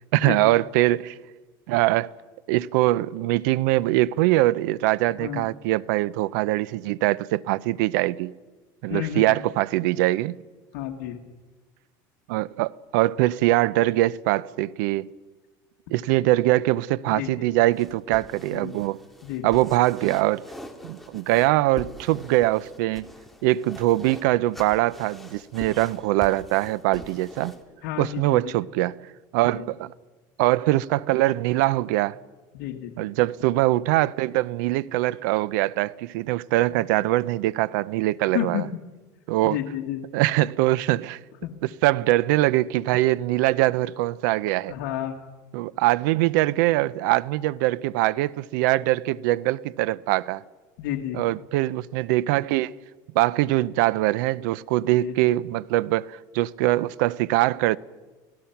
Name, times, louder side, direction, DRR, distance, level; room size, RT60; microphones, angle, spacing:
voice 1, 0.1-1.1 1.7-2.1 2.5-8.3 8.8-10.4 12.3-15.1 15.9-19.0 19.4-20.4 20.8-23.1 23.4-27.5 28.0-29.1 29.3-29.9 30.4-32.2 33.0-38.6 39.3-39.6 40.1-41.2 41.8-44.7 45.5-50.4 51.1-52.7 53.1-57.8, right 17 dB, 75° right, 0.6 m, -22 dB
voice 2, 8.9-9.3 10.7-11.2 17.1-17.5 18.5-18.8 19.2-19.5 27.8-28.5 29.4-29.6 32.5-33.1 38.3-38.6 39.4-40.0 41.4-41.5 44.7-45.2 50.8-51.2 55.0-55.3, left 12 dB, 75° left, 1.7 m, -31 dB
sound 1, 17.7-27.6, left 1 dB, ahead, 1.9 m, -43 dB
29.0 x 17.5 x 5.8 m
supercardioid pair, 130°, 10 cm